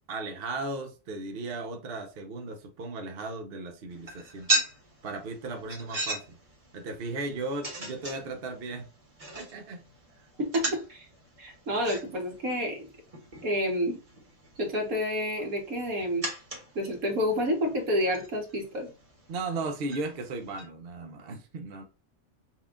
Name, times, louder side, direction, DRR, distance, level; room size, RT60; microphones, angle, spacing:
voice 1, 0.1-4.5 5.0-6.4 6.7-8.9 9.3-9.9 19.3-21.8, right 3 dB, 50° right, 0.8 m, -36 dB
sound 1, 3.9-20.7, right 2 dB, 25° right, 1.3 m, -38 dB
voice 2, 10.4-11.0 11.4-12.9 13.4-14.0 14.6-16.3 16.7-18.9, equal, 65° right, 1.7 m, -29 dB
5.8 x 2.4 x 3.6 m
omnidirectional pair, 1.6 m